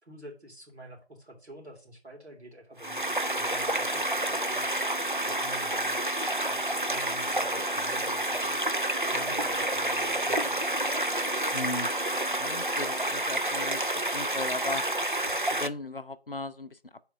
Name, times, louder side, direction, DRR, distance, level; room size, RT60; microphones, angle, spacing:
voice 1, 0.0-4.8 5.2-6.1 6.5-8.7 9.0-10.7, right 1 dB, 85° right, 3.0 m, -49 dB
sound 1, 2.8-13.2, left 3 dB, 25° right, 2.8 m, -48 dB
sound 2, 2.8-15.7, right 1 dB, 50° right, 0.5 m, -29 dB
voice 2, 9.1-9.5 11.5-11.9 12.4-14.8 15.5-17.0, left 2 dB, 55° left, 0.6 m, -37 dB
5.7 x 4.5 x 6.4 m
figure-of-eight pair, 175°, 32 cm